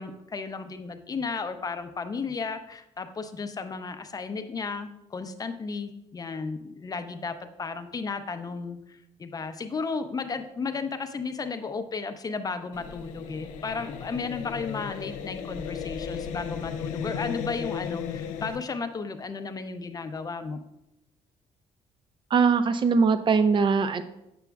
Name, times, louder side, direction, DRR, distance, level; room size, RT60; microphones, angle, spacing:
voice 1, 0.0-20.6, left 4 dB, 30° left, 9 dB, 0.5 m, -34 dB
sound 1, 12.7-18.6, left 7 dB, 90° left, 0.4 m, -35 dB
voice 2, 22.3-24.0, right 5 dB, 40° right, 11 dB, 0.5 m, -21 dB
6.9 x 6.0 x 2.3 m, 0.89 s
cardioid pair, 85°, 12 cm